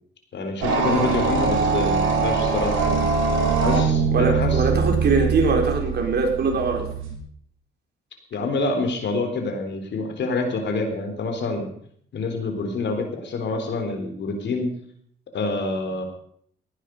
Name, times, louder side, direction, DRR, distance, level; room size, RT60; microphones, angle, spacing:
voice 1, 0.3-3.2 3.6-4.8 8.3-11.7 12.1-14.7 15.3-16.0, left 3 dB, 65° left, 5 dB, 3.8 m, -27 dB
sound 1, 0.6-7.1, right 5 dB, 80° right, 3.6 m, -22 dB
voice 2, 4.1-6.9, right 4 dB, 55° right, 3 dB, 4.0 m, -22 dB
18.0 x 10.0 x 5.4 m, 0.63 s
cardioid pair, 90°, 20 cm